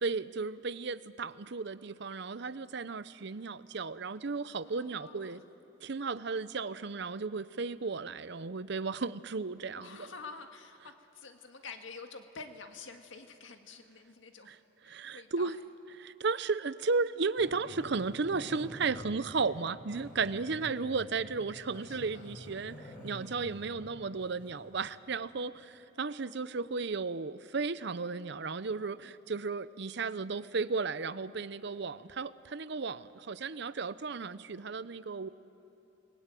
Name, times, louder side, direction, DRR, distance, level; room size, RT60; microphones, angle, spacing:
voice 1, 0.0-5.4 5.8-10.1 14.5-14.6 14.9-15.6 16.0-35.3, right 4 dB, 60° right, 15 dB, 0.7 m, -34 dB
voice 2, 4.6-5.4 9.7-14.6 14.8-15.6 21.6-22.3, left 4 dB, 75° left, 5 dB, 1.9 m, -49 dB
Growling, 17.4-24.7, equal, 45° left, 6.3 m, -49 dB
30.0 x 20.0 x 9.1 m, 2.9 s
head